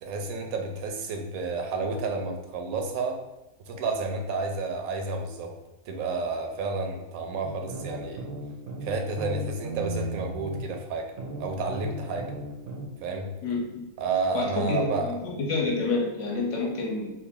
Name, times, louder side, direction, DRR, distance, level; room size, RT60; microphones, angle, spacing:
voice 1, 0.0-3.2 3.7-5.5 5.9-8.3 8.8-11.1 11.4-12.3 13.0-13.3 14.0-15.2, right 3 dB, 80° right, 3 dB, 1.0 m, -30 dB
sound 1, 7.4-10.7 11.2-12.9, right 2 dB, 55° right, 0.6 m, -36 dB
voice 2, 13.4-13.8 14.3-17.1, left 3 dB, 65° left, -1 dB, 1.0 m, -28 dB
3.1 x 2.5 x 3.5 m, 0.98 s
omnidirectional pair, 1.5 m